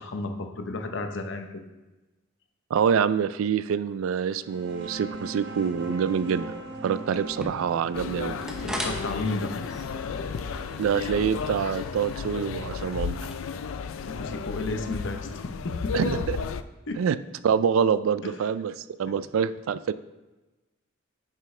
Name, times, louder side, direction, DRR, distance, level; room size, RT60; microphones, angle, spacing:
voice 1, 0.0-1.5 8.8-9.5 14.1-16.1 16.9-17.0 18.2-18.3, left 2 dB, 65° left, 6 dB, 0.8 m, -32 dB
voice 2, 2.7-6.5 6.8-8.4 10.8-13.2 15.9-16.4 17.0-17.2 17.4-19.9, right 7 dB, 80° right, 15 dB, 0.3 m, -26 dB
sound 1, 4.3-13.6, right 2 dB, 60° right, 1.0 m, -41 dB
sound 2, 7.1-15.0, equal, 5° right, 0.8 m, -41 dB
sound 3, 7.9-16.6, left 6 dB, 80° left, 0.4 m, -33 dB
9.7 x 5.6 x 3.3 m, 1.1 s
head